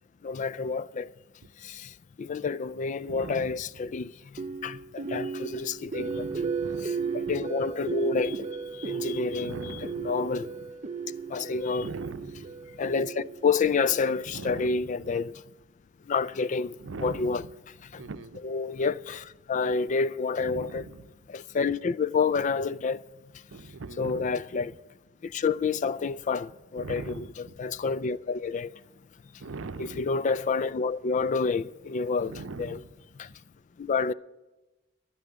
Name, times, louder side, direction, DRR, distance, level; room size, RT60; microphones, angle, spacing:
voice 1, 0.2-1.1 1.6-1.9 2.2-4.1 4.6-6.3 6.8-8.5 8.8-10.5 11.3-11.9 12.8-15.3 16.1-16.7 17.0-17.4 17.9-18.0 18.4-20.8 21.3-23.0 24.0-24.7 25.2-28.7 29.8-32.8 33.2-33.3 33.8-34.1, left 5 dB, 40° left, 0.4 m, -29 dB
voice 2, 3.1-3.6 6.0-7.4 9.4-10.1 11.8-12.5 14.3-15.2 16.8-17.5 18.0-18.4 20.4-21.1 23.5-24.4 26.8-27.5 29.4-30.0 32.3-32.9, right 3 dB, 80° right, 0.6 m, -41 dB
sound 1, 4.4-14.5, right 5 dB, 35° right, 0.6 m, -35 dB
12.0 x 9.6 x 7.8 m
head